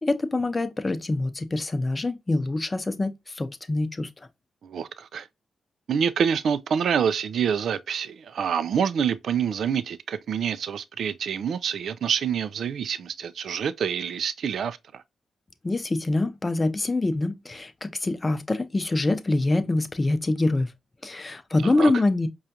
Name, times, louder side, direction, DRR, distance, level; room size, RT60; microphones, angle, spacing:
voice 1, 0.0-4.3 15.6-20.7 21.0-22.3, left 2 dB, 30° left, 0.6 m, -25 dB
voice 2, 4.6-5.3 5.9-15.0 21.6-21.9, right 7 dB, 70° right, 0.3 m, -27 dB
4.9 x 2.3 x 2.8 m
cardioid pair, 60°, 0 cm